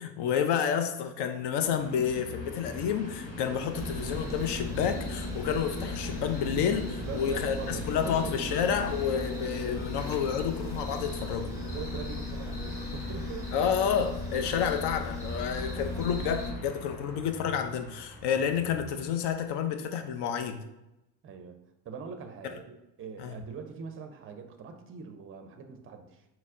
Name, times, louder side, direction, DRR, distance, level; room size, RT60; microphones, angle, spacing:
voice 1, 0.0-11.5 13.5-20.6 23.2-23.3, left 8 dB, 55° left, 7 dB, 0.6 m, -30 dB
Train, 1.5-19.6, left 2 dB, 80° left, 1.0 m, -43 dB
sound 1, 3.7-16.5, left 2 dB, 5° right, 0.9 m, -37 dB
voice 2, 7.0-8.7 11.6-13.5 14.4-14.7 21.2-21.6 21.8-26.2, right 5 dB, 25° right, 7 dB, 0.5 m, -42 dB
4.0 x 2.1 x 3.6 m, 0.92 s
hypercardioid pair, 65°, 50 cm